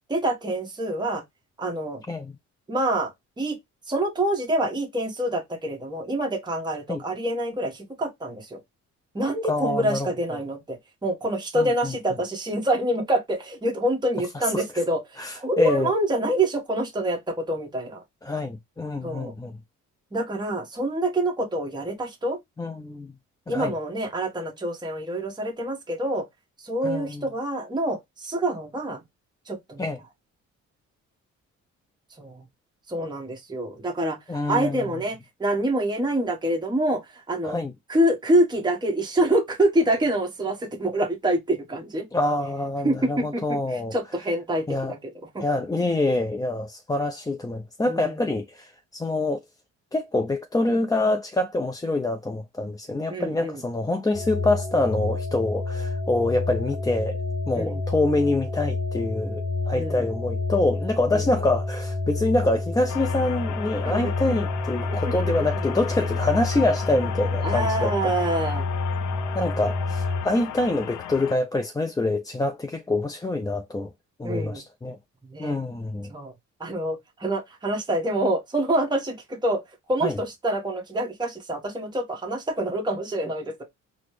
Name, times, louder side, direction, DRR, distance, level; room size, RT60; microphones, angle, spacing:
voice 1, 0.1-1.2 1.6-2.0 2.7-3.1 3.4-3.6 3.9-8.6 9.1-18.0 19.0-19.3 20.1-22.4 23.5-26.3 26.6-29.0 29.5-29.8 32.2-32.4 32.9-34.2 34.5-37.6 37.9-42.1 42.8-45.0 45.3-45.4 47.9-48.2 53.1-53.6 57.6-57.8 59.8-60.1 61.1-61.2 63.8-64.1 64.9-65.0 65.3-65.5 67.4-68.6 74.2-74.6 75.3-75.5 76.1-76.3 76.6-79.6 79.9-83.6, right 1 dB, 15° right, 1.1 m, -26 dB
voice 2, 9.5-10.4 11.6-11.9 14.3-14.6 15.2-15.9 18.2-19.6 22.6-23.1 23.5-23.7 26.8-27.2 29.8-30.0 34.3-34.8 37.4-37.7 42.1-43.9 44.7-44.9 45.4-49.4 49.9-57.2 57.5-68.1 69.3-73.9 74.2-75.0 75.4-76.1 80.0-80.2, left 2 dB, 10° left, 0.4 m, -26 dB
sound 1, 54.1-70.2, left 3 dB, 35° left, 0.9 m, -29 dB
sound 2, 62.9-71.4, left 11 dB, 75° left, 0.5 m, -35 dB
4.1 x 2.1 x 3.1 m
cardioid pair, 90°, 30 cm